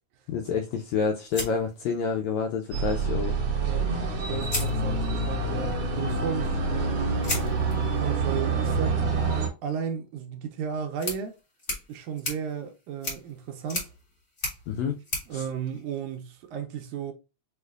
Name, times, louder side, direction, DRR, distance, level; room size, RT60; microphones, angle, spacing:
voice 1, 0.3-3.3 14.7-14.9 15.3-15.4, left 6 dB, 85° left, 1.6 m, -28 dB
sound 1, 1.3-2.5 3.8-3.9 4.4-5.4 7.2-16.4, left 1 dB, 35° left, 1.0 m, -38 dB
sound 2, 2.7-9.5, right 3 dB, 60° right, 1.3 m, -27 dB
voice 2, 4.2-7.1 8.0-9.0 9.6-11.4 11.9-13.9 15.3-17.1, right 7 dB, 80° right, 1.9 m, -34 dB
6.4 x 2.5 x 2.3 m
omnidirectional pair, 3.8 m